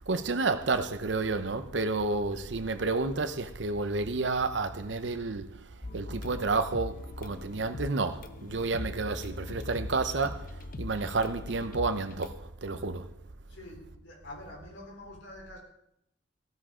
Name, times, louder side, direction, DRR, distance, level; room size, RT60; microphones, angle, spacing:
voice 1, 0.1-5.6 5.9-13.1, right 3 dB, 70° right, 0.8 m, -30 dB
sound 1, 5.8-12.3, left 2 dB, 50° left, 0.8 m, -41 dB
voice 2, 13.5-15.6, left 1 dB, 80° left, 4.0 m, -46 dB
15.5 x 13.5 x 3.8 m
head